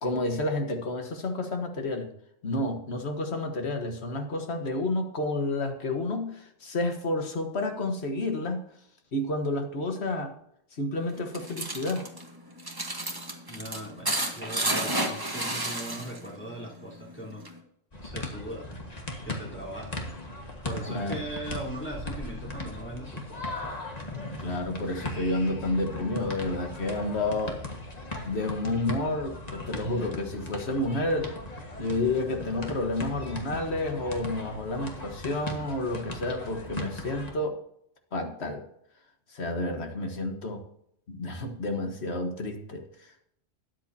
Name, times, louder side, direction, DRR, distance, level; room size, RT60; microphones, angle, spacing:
voice 1, 0.0-2.1 2.4-8.6 9.1-10.3 10.7-12.0 20.9-21.2 24.4-27.6 28.2-31.3 31.8-37.6 38.1-38.6 39.3-40.6 41.1-42.8, left 2 dB, 55° left, 5 dB, 1.6 m, -30 dB
sound 1, 11.1-16.3 16.6-17.6, right 1 dB, 20° right, 1.3 m, -31 dB
voice 2, 13.5-17.4 18.0-18.7 19.3-20.0 20.6-23.5, right 1 dB, 10° left, -6 dB, 3.6 m, -39 dB
sound 2, 17.9-37.3, left 2 dB, 30° left, 1.7 m, -38 dB
13.0 x 9.7 x 2.8 m, 0.73 s
omnidirectional pair, 1.3 m